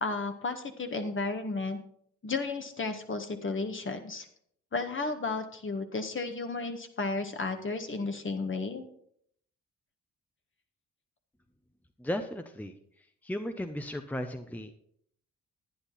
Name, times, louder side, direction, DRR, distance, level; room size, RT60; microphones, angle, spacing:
voice 1, 0.0-1.8 2.2-4.3 4.7-8.8, left 3 dB, 40° left, 6 dB, 1.7 m, -33 dB
voice 2, 12.0-14.7, left 1 dB, 5° left, 7 dB, 0.9 m, -36 dB
10.5 x 9.8 x 4.2 m, 0.67 s
supercardioid pair, 60°, 31 cm